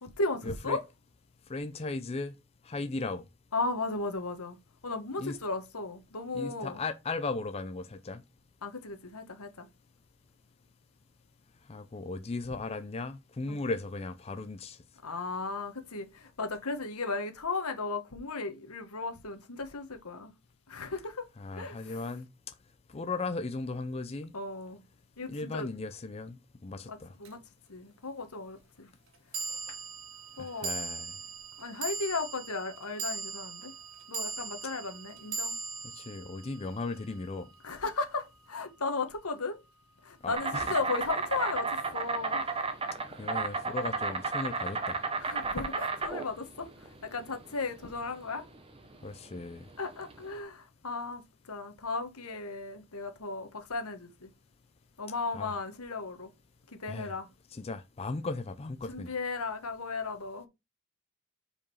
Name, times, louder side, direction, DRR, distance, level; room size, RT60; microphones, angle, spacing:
voice 1, 0.0-0.8 3.5-4.6 4.8-6.8 8.6-9.7 13.5-13.6 15.0-20.3 20.7-21.3 21.5-22.1 24.3-24.8 25.2-25.7 26.8-27.4 27.7-28.9 29.3-29.4 29.7-29.8 30.4-30.8 31.6-33.7 34.1-35.5 37.6-39.6 40.0-42.4 45.2-48.5 49.8-54.3 55.0-56.3 56.7-57.3 58.8-60.5, left 3 dB, 85° left, 1.4 m, -36 dB
voice 2, 1.5-2.3 2.6-3.2 5.2-5.4 6.3-8.2 11.7-14.8 21.4-22.5 22.9-24.3 25.3-27.1 29.5-29.6 30.4-31.1 35.9-37.5 40.2-40.8 43.2-45.0 49.0-49.7 55.3-55.5 56.9-57.1 57.6-59.1, left 3 dB, 30° left, 0.5 m, -37 dB
sound 1, 27.2-27.3 29.3-37.8, right 4 dB, 65° right, 1.3 m, -39 dB
Insect, 40.3-50.3, right 4 dB, 25° right, 0.9 m, -33 dB
5.1 x 4.8 x 5.4 m
head